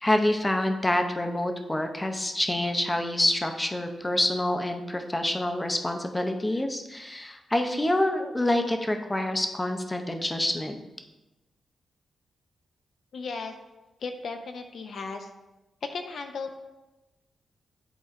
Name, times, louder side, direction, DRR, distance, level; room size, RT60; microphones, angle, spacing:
voice 1, 0.0-10.8, left 1 dB, 10° left, 5 dB, 0.5 m, -27 dB
voice 2, 13.1-13.5 14.0-15.3 15.8-16.6, left 4 dB, 60° left, 5 dB, 0.5 m, -35 dB
11.0 x 4.2 x 2.5 m, 1.1 s
wide cardioid pair, 145°, 0 cm